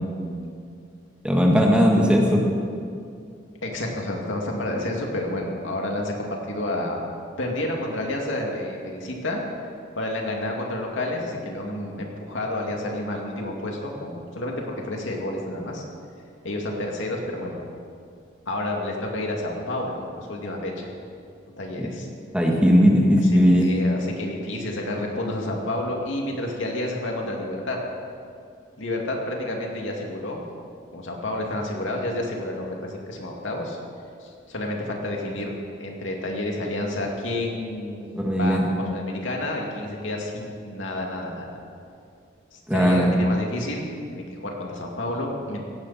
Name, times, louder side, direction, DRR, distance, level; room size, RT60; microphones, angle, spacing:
voice 1, 1.2-2.4 22.3-23.7 38.2-38.6 42.7-43.1, equal, 5° right, -1 dB, 1.6 m, -18 dB
voice 2, 3.6-7.0 7.4-9.4 10.0-15.8 16.4-17.6 18.5-20.9 21.6-22.1 23.2-27.8 28.8-30.4 30.9-33.8 34.2-35.5 35.8-41.6 42.5-45.6, left 1 dB, 80° left, 0 dB, 2.5 m, -30 dB
17.5 x 16.5 x 4.3 m, 2.3 s
head